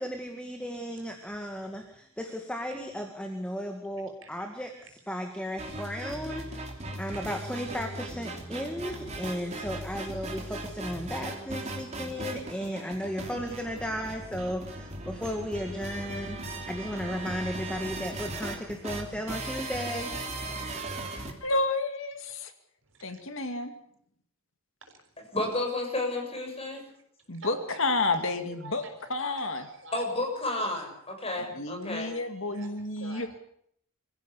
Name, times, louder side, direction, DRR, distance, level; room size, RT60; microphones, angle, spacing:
voice 1, 0.0-4.7 5.1-20.1, equal, 5° left, 3 dB, 2.1 m, -35 dB
voice 2, 1.0-1.9 4.2-4.5 4.7-4.9 22.8-23.2 24.8-25.0 27.3-28.2 28.5-30.0 32.5-32.7 33.0-33.4, right 2 dB, 60° right, 5 dB, 6.2 m, -47 dB
sound 1, 5.6-21.3, right 2 dB, 30° right, 3.4 m, -38 dB
voice 3, 21.4-22.5 23.0-23.7 27.3-28.8 29.1-29.6 31.5-33.3, left 2 dB, 65° left, 8 dB, 2.3 m, -30 dB
voice 4, 25.3-26.8 29.9-32.1, left 2 dB, 25° left, 2 dB, 7.0 m, -31 dB
25.5 x 15.5 x 8.5 m, 0.69 s
head